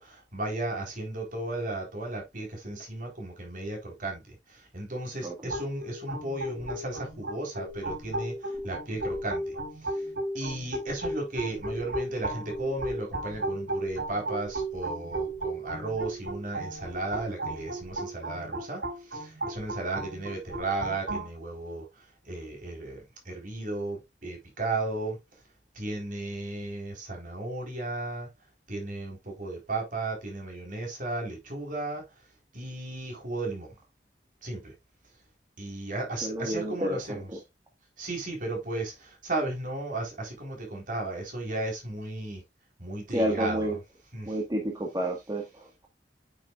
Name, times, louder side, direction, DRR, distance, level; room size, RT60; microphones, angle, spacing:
voice 1, 0.0-10.1 10.3-25.2 25.7-28.3 28.7-32.0 32.5-33.7 34.4-34.7 35.6-37.3 38.0-42.4 42.8-43.8 44.1-44.4, right 2 dB, 50° right, 4.0 m, -35 dB
voice 2, 5.2-5.5 36.2-37.4 43.1-43.8 44.2-45.9, right 1 dB, 20° right, 1.6 m, -30 dB
sound 1, 5.5-21.3, right 1 dB, 90° right, 4.1 m, -35 dB
8.9 x 6.4 x 2.4 m
head